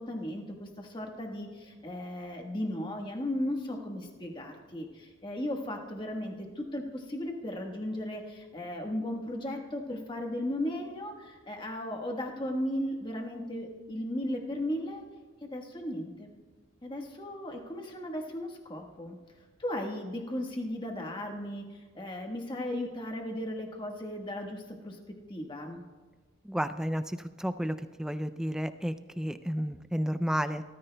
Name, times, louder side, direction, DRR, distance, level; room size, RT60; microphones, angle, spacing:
voice 1, 0.0-15.0 15.4-16.3 16.8-19.2 19.6-25.8, left 1 dB, 25° left, 1 dB, 1.3 m, -36 dB
voice 2, 26.4-30.6, equal, 5° right, 11 dB, 0.3 m, -32 dB
24.5 x 13.5 x 2.2 m, 1.3 s
head